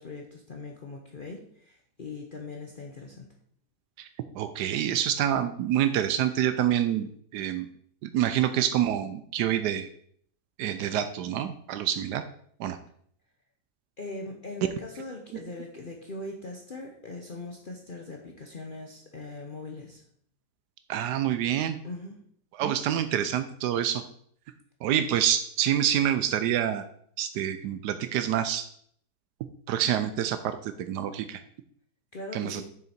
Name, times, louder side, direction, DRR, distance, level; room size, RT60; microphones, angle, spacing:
voice 1, 0.0-3.3 14.0-20.0 21.8-22.2 32.1-32.6, left 2 dB, 40° left, 1 dB, 0.9 m, -40 dB
voice 2, 4.4-7.7 8.0-9.9 10.6-12.2 12.6-12.8 20.9-21.8 22.6-24.0 24.8-26.8 27.2-28.6 29.7-31.4 32.3-32.6, right 10 dB, 85° right, 10 dB, 1.2 m, -27 dB
6.8 x 6.5 x 4.2 m, 0.63 s
omnidirectional pair, 1.7 m